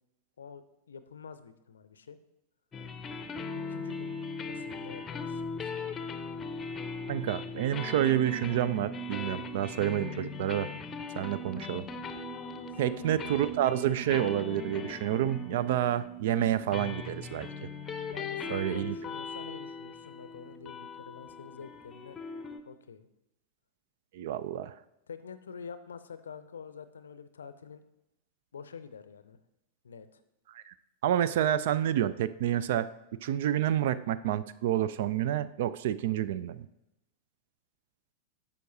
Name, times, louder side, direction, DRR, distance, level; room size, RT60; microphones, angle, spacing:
voice 1, 0.4-2.2 3.7-4.2 4.5-5.9 12.6-13.1 18.1-22.2 22.7-23.1 25.1-27.8 28.5-29.4 29.8-30.2, left 6 dB, 70° left, 12 dB, 0.5 m, -47 dB
sound 1, 2.7-22.6, left 3 dB, 20° left, 0.7 m, -39 dB
voice 2, 7.1-10.7 11.2-11.9 12.8-17.5 18.5-19.0 24.1-24.8 30.5-30.7 31.0-32.9 33.2-36.7, right 11 dB, 55° right, 16 dB, 0.3 m, -29 dB
11.0 x 7.1 x 2.7 m, 0.89 s
figure-of-eight pair, 90°, 0 cm